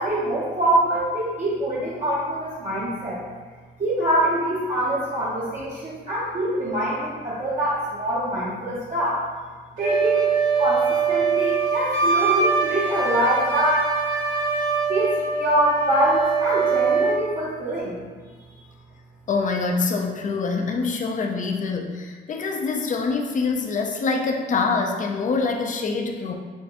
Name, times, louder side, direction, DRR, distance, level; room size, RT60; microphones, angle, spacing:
voice 1, 0.0-3.2 3.8-9.2 9.8-10.3 10.6-13.8 14.9-15.1 15.4-18.0, right 1 dB, 40° right, -7 dB, 0.9 m, -24 dB
Wind instrument woodwind instrument, 9.8-17.2, right 5 dB, 70° right, 1.1 m, -23 dB
voice 2, 19.3-26.3, left 4 dB, 40° left, 2 dB, 0.5 m, -25 dB
6.4 x 2.2 x 2.9 m, 1.4 s
cardioid pair, 90°, 20 cm